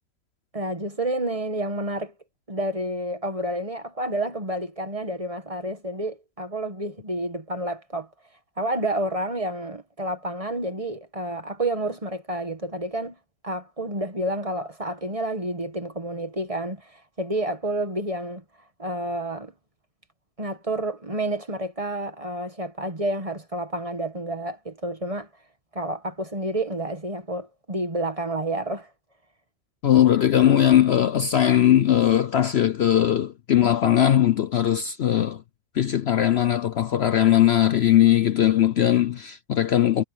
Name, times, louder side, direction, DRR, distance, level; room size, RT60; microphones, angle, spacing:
voice 1, 0.5-2.1 2.5-8.1 8.6-13.2 13.4-18.4 18.8-19.5 20.4-25.3 25.7-28.9 33.6-33.7, right 1 dB, 25° right, 1.6 m, -29 dB
voice 2, 29.8-35.4 35.7-40.0, left 11 dB, 60° left, 0.8 m, -19 dB
omnidirectional pair, 1.4 m